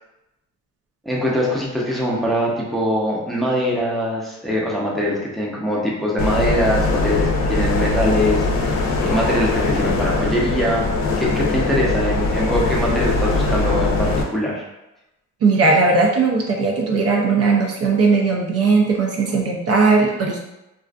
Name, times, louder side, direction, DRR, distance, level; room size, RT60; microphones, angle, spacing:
voice 1, 1.0-10.9 11.2-14.6, equal, ahead, -4 dB, 0.6 m, -22 dB
sound 1, 6.2-14.2, left 3 dB, 65° left, 0.5 m, -21 dB
voice 2, 15.4-20.4, right 4 dB, 55° right, 0 dB, 0.4 m, -18 dB
2.5 x 2.4 x 2.3 m, 0.94 s
cardioid pair, 90°, 30 cm